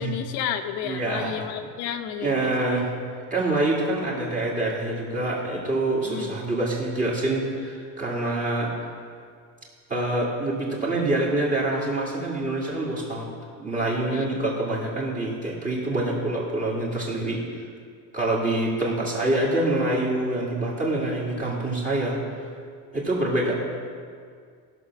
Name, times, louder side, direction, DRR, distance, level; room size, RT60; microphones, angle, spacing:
voice 1, 0.0-2.8 6.0-6.3 14.1-14.4 18.8-19.0, left 9 dB, 75° left, 7 dB, 0.9 m, -32 dB
voice 2, 0.8-1.3 2.2-2.9 3.3-8.7 9.9-13.3 13.6-17.4 18.1-22.2 22.9-23.5, right 2 dB, 20° right, -4 dB, 2.1 m, -26 dB
16.0 x 6.2 x 6.0 m, 2.1 s
cardioid pair, 165°, 37 cm